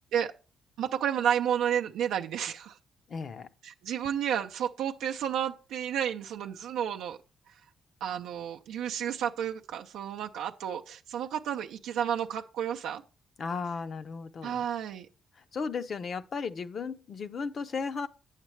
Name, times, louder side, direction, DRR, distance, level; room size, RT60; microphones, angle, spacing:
voice 1, 0.8-2.8 3.6-7.2 7.5-7.6 8.0-13.0 14.4-15.1, right 9 dB, 85° right, 0.4 m, -31 dB
voice 2, 3.1-3.5 13.4-14.6 15.4-18.1, left 5 dB, 50° left, 0.6 m, -35 dB
8.9 x 7.3 x 3.1 m
cardioid pair, 90°, 0 cm